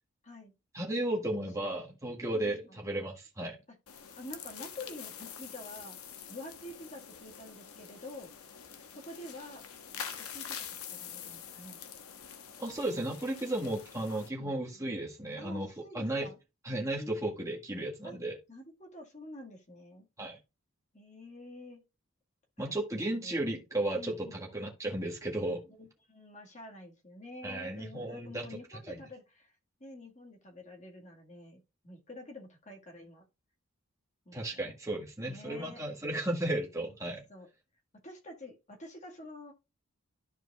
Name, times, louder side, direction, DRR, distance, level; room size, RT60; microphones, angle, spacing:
voice 1, 0.7-3.6 12.6-15.7 15.9-16.3 16.6-18.4 20.2-20.4 22.6-25.6 27.4-28.6 28.9-29.0 34.3-37.2, right 1 dB, 15° right, 1.6 m, -34 dB
voice 2, 1.9-2.8 3.7-3.8 4.2-6.0 6.3-8.3 8.9-9.6 10.2-11.8 14.4-14.6 15.4-16.4 17.0-17.5 18.0-18.2 18.5-20.1 20.9-21.8 22.6-23.5 23.9-24.5 25.7-29.5 29.8-33.2 34.3-34.6 35.3-35.8 36.9-37.5 38.0-39.5, left 1 dB, 35° left, 1.8 m, -48 dB
sound 1, 3.9-14.3, left 8 dB, 90° left, 1.1 m, -46 dB
13.0 x 4.6 x 2.4 m
head